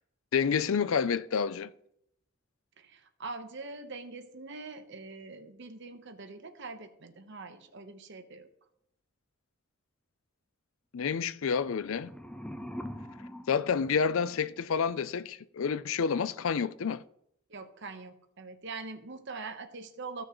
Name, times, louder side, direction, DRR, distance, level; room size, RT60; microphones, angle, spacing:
voice 1, 0.3-1.7 10.9-12.1 13.5-17.0, left 6 dB, 75° left, 0.5 m, -29 dB
voice 2, 2.8-8.5 17.5-20.2, right 3 dB, 60° right, 1.1 m, -43 dB
sound 1, 11.6-14.6, equal, 5° left, 0.5 m, -44 dB
15.5 x 6.3 x 3.1 m
head